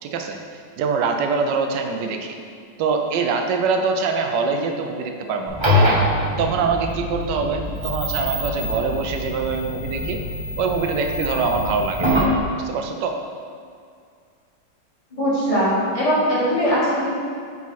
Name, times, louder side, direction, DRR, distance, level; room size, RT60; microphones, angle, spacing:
voice 1, 0.0-2.4 2.8-6.0 6.4-10.2 10.6-12.1 12.5-13.2, right 5 dB, 75° right, 4 dB, 1.3 m, -24 dB
sound 1, 5.5-12.4, left 1 dB, 25° right, 0.7 m, -24 dB
voice 2, 15.1-17.1, equal, 20° left, -10 dB, 1.5 m, -20 dB
7.3 x 4.1 x 4.1 m, 2.2 s
omnidirectional pair, 1.9 m